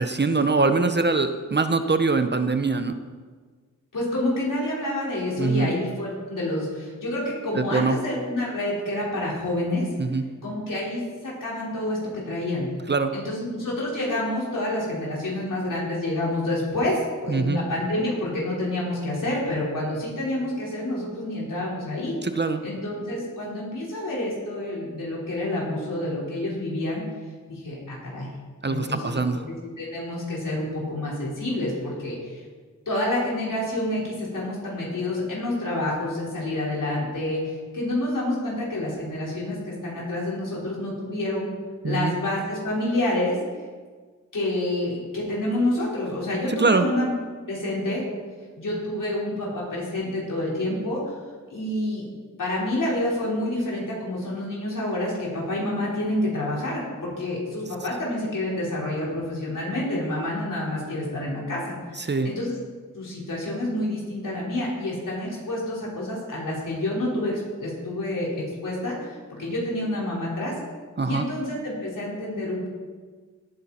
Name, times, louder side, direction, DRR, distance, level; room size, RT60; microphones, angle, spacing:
voice 1, 0.0-3.0 5.4-5.7 7.5-8.0 10.0-10.3 12.9-13.1 17.3-17.6 22.2-22.6 28.6-29.4 41.8-42.1 46.5-46.9 62.0-62.3 71.0-71.3, right 3 dB, 35° right, 9 dB, 0.8 m, -23 dB
voice 2, 3.9-9.9 10.4-12.7 13.1-22.1 22.6-27.0 27.5-28.3 28.7-29.2 29.8-32.4 32.8-41.5 41.8-43.4 44.3-47.1 47.5-48.0 48.6-51.1 51.5-52.0 52.4-62.6 62.9-70.5 71.0-72.7, left 1 dB, 80° left, -5 dB, 4.8 m, -28 dB
17.5 x 9.0 x 4.4 m, 1.5 s
wide cardioid pair, 80°, 32 cm